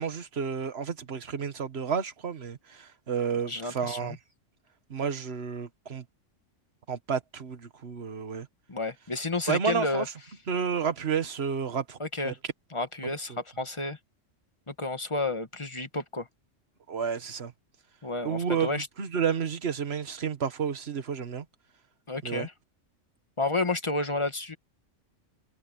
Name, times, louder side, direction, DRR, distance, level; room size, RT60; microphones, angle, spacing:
voice 1, 0.0-4.1 4.9-6.0 6.9-8.5 9.5-10.0 10.5-12.0 12.2-12.3 16.9-17.5 18.2-18.7 19.0-21.4 22.2-22.5, right 6 dB, 55° right, 1.6 m, -31 dB
voice 2, 3.4-4.2 8.7-10.0 12.0-12.4 12.7-14.0 14.7-16.3 18.0-18.9 22.1-22.5 23.4-24.6, left 2 dB, 25° left, 1.6 m, -31 dB
omnidirectional pair, 1.3 m